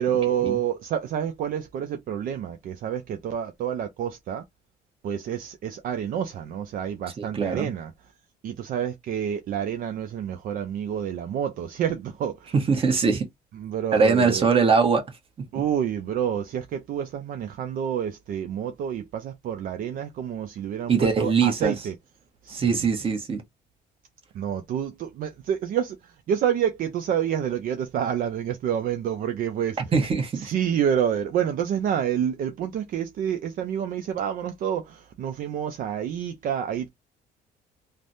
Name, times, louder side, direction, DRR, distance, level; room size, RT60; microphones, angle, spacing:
voice 1, 0.0-4.4 5.0-7.9 8.4-12.5 13.6-14.5 15.5-21.9 22.4-22.9 24.3-29.8 30.3-36.9, right 9 dB, 55° right, 0.5 m, -28 dB
voice 2, 7.2-7.7 12.5-13.3 13.9-15.0 15.4-15.5 20.9-21.7 22.5-23.4 29.8-30.5, right 5 dB, 35° right, 1.0 m, -22 dB
3.2 x 2.1 x 2.6 m
cardioid pair, 110°, 17 cm